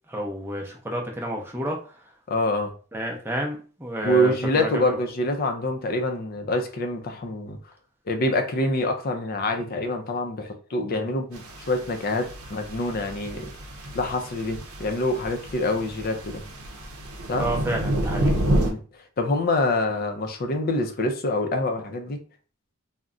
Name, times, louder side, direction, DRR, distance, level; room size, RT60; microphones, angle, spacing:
voice 1, 0.1-1.8 2.9-5.0 17.4-18.3, equal, 10° right, 0 dB, 0.6 m, -29 dB
voice 2, 2.3-2.7 4.0-7.6 8.1-13.5 13.9-16.4 17.3-17.4 18.6-18.8 19.2-22.2, left 1 dB, 45° left, 5 dB, 0.5 m, -26 dB
sound 1, 11.3-18.7, right 1 dB, 80° right, 0.6 m, -29 dB
2.4 x 2.1 x 3.7 m, 0.39 s
head